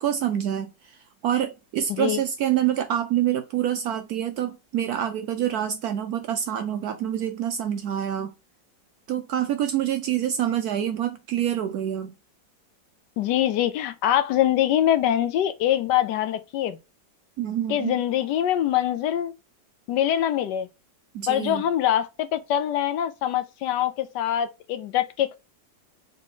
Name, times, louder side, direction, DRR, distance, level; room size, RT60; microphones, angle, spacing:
voice 1, 0.0-8.3 9.1-12.1 17.4-17.9 21.1-21.6, right 10 dB, 75° right, 0.9 m, -26 dB
voice 2, 1.9-2.2 13.2-16.8 17.7-19.3 19.9-20.7 21.3-25.4, left 11 dB, 75° left, 1.1 m, -24 dB
4.0 x 3.2 x 3.6 m
omnidirectional pair, 2.0 m